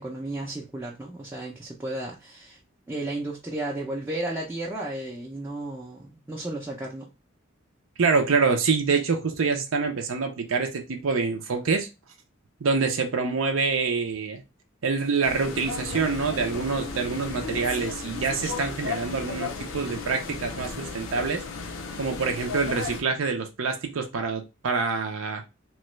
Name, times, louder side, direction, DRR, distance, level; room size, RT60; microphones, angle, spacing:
voice 1, 0.0-2.6 2.9-7.1, right 2 dB, 10° right, 0.5 m, -33 dB
voice 2, 8.0-11.9 12.6-14.4 14.8-21.4 22.0-25.4, right 4 dB, 80° right, 0.5 m, -26 dB
sound 1, 15.2-23.0, left 4 dB, 80° left, 0.6 m, -34 dB
3.0 x 2.2 x 3.0 m
head